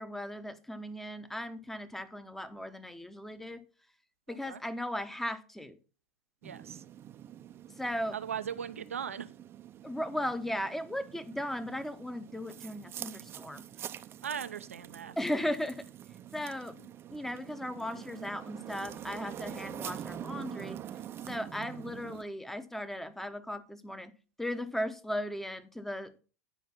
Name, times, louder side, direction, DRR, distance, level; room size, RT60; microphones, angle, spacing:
voice 1, 0.0-3.7 4.3-5.8 7.8-8.2 9.8-13.7 15.2-15.8 16.3-20.8 21.3-24.1 24.4-26.2, left 1 dB, 5° left, 0.9 m, -37 dB
voice 2, 4.3-4.6 6.4-6.8 8.1-9.3 14.2-15.1, right 8 dB, 85° right, 0.7 m, -38 dB
sound 1, 6.4-22.2, right 10 dB, 35° right, 0.6 m, -45 dB
9.4 x 5.0 x 5.7 m
hypercardioid pair, 90°, 7 cm